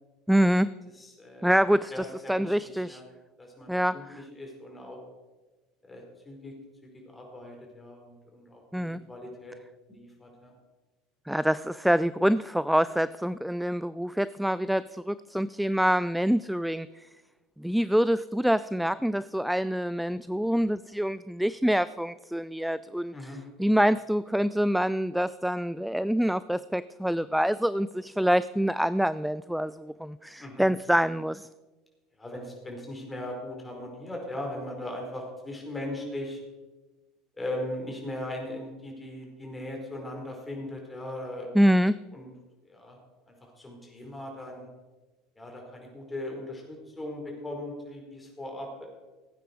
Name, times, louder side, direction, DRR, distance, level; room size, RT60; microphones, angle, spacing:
voice 1, 0.3-0.7 1.4-3.0 3.7-4.0 8.7-9.0 11.3-17.1 17.6-23.1 23.6-31.5 41.5-42.0, equal, ahead, 17 dB, 0.3 m, -26 dB
voice 2, 0.9-1.5 1.9-3.0 3.4-5.0 5.9-6.5 7.1-9.6 9.9-10.5 23.1-23.4 30.4-30.6 32.2-36.4 37.4-41.5 42.1-42.3 42.6-43.0 43.3-44.7 45.4-48.8, left 1 dB, 15° left, 0 dB, 4.7 m, -39 dB
17.5 x 9.1 x 4.7 m, 1.2 s
figure-of-eight pair, 70°, 0 cm